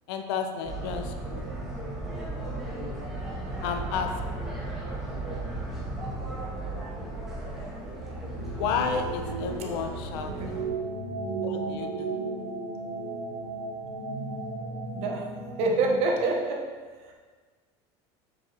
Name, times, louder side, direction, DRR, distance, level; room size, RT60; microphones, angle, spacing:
voice 1, 0.1-1.5 3.6-4.1 8.6-10.3 11.4-12.2, left 6 dB, 85° left, 6 dB, 0.8 m, -31 dB
sound 1, 0.6-10.6, right 2 dB, 5° right, 1.5 m, -35 dB
voice 2, 6.4-6.7 10.2-10.5 14.9-15.3 15.6-16.7 17.0-17.1, right 3 dB, 55° right, 0 dB, 1.2 m, -27 dB
sound 2, 8.4-16.0, right 3 dB, 85° right, 1.3 m, -35 dB
7.4 x 6.4 x 3.0 m, 1.5 s
cardioid pair, 155°, 13 cm